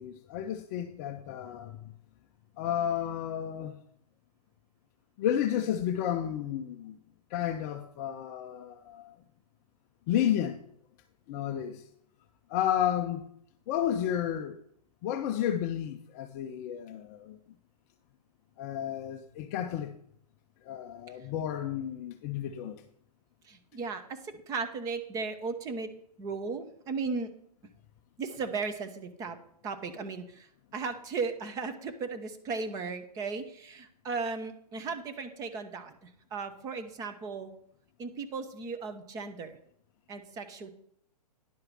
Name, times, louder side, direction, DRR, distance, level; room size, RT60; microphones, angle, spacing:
voice 1, 0.0-1.8 2.6-3.8 5.2-7.0 7.3-9.1 10.1-10.6 11.3-11.8 12.5-13.3 13.7-14.6 15.0-17.4 18.6-20.0 20.7-22.8, left 10 dB, 25° left, 0.4 m, -32 dB
voice 2, 23.4-25.9 26.2-27.3 28.2-29.4 29.6-37.5 38.0-39.6 40.1-40.7, right 4 dB, 15° right, 0.7 m, -36 dB
10.0 x 4.7 x 6.2 m
figure-of-eight pair, 130°, 21 cm